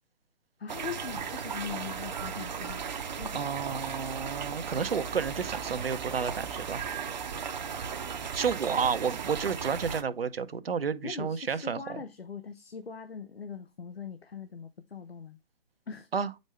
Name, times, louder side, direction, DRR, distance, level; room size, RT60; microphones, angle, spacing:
voice 1, 0.6-2.9 3.2-3.5 11.0-15.4 15.9-16.1, left 6 dB, 80° left, 0.9 m, -41 dB
sound 1, 0.7-10.0, right 6 dB, 45° right, 0.8 m, -36 dB
voice 2, 3.3-6.9 8.3-12.0 16.1-16.3, right 6 dB, 75° right, 0.8 m, -31 dB
8.1 x 5.3 x 3.2 m
figure-of-eight pair, 140°, 30 cm